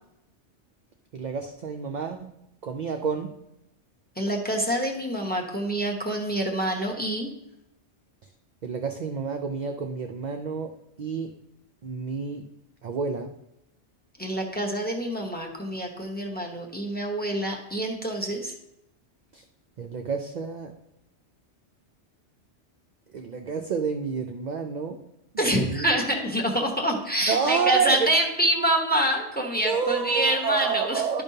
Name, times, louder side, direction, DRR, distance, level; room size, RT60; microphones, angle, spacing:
voice 1, 1.1-2.3 2.6-3.3 8.6-11.3 11.8-12.5 12.8-13.3 19.3-19.4 19.8-20.7 23.1-25.0 25.5-25.9 27.3-28.1 29.6-31.2, right 6 dB, 60° right, 4 dB, 0.5 m, -29 dB
voice 2, 4.2-7.3 14.2-18.5 25.4-31.2, right 1 dB, 10° left, 2 dB, 0.9 m, -26 dB
11.5 x 5.2 x 2.7 m, 0.86 s
omnidirectional pair, 1.2 m